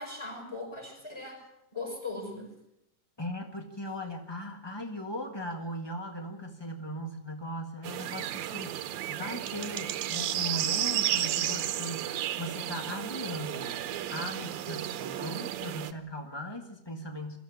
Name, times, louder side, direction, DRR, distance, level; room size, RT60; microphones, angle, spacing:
voice 1, 0.0-1.4 1.7-2.5, left 3 dB, 10° left, 2 dB, 6.1 m, -39 dB
voice 2, 3.2-13.8 14.1-17.4, left 1 dB, 35° left, 4 dB, 0.4 m, -38 dB
sound 1, 7.8-15.9, right 12 dB, 70° right, 2.1 m, -33 dB
22.5 x 14.0 x 9.9 m, 0.81 s
omnidirectional pair, 3.7 m